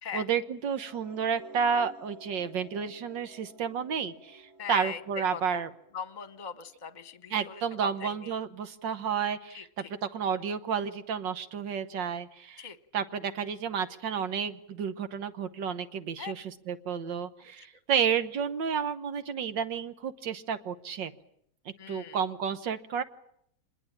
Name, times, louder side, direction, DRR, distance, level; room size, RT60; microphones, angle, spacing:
voice 1, 0.1-5.7 7.3-9.7 10.0-12.6 12.9-21.1 21.9-23.0, right 7 dB, 75° right, 11 dB, 1.9 m, -31 dB
sound 1, 0.8-7.0, right 1 dB, 15° right, 1.0 m, -51 dB
voice 2, 4.6-5.6 5.9-8.3 9.5-9.9 12.6-12.8 16.2-16.3 17.6-17.7 17.9-18.0 21.8-22.2, left 7 dB, 30° left, 14 dB, 1.2 m, -40 dB
26.0 x 21.0 x 8.7 m, 0.71 s
omnidirectional pair, 2.0 m